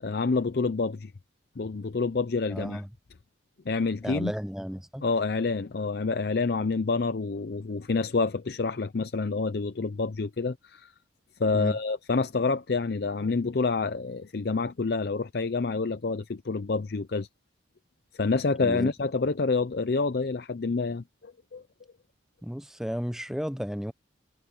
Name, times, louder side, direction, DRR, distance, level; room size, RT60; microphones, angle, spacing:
voice 1, 0.0-1.1 1.6-2.8 3.7-4.3 5.0-10.9 11.4-17.3 18.2-21.6, left 4 dB, 55° left, 0.5 m, -28 dB
voice 2, 2.5-2.9 4.0-5.1 11.5-11.8 18.6-18.9 22.4-23.9, equal, ahead, 0.7 m, -33 dB
head